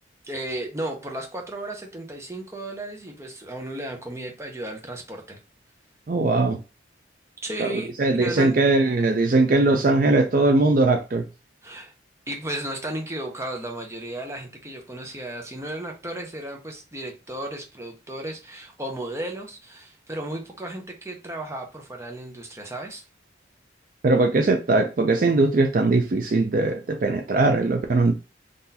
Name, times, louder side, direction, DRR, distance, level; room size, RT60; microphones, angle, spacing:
voice 1, 0.2-5.4 7.4-8.6 11.6-11.9 12.3-23.0, right 1 dB, 15° right, 0.7 m, -34 dB
voice 2, 6.1-6.6 7.6-7.7 8.0-11.2 24.0-28.1, right 2 dB, 45° right, 0.4 m, -20 dB
3.8 x 2.5 x 2.7 m
head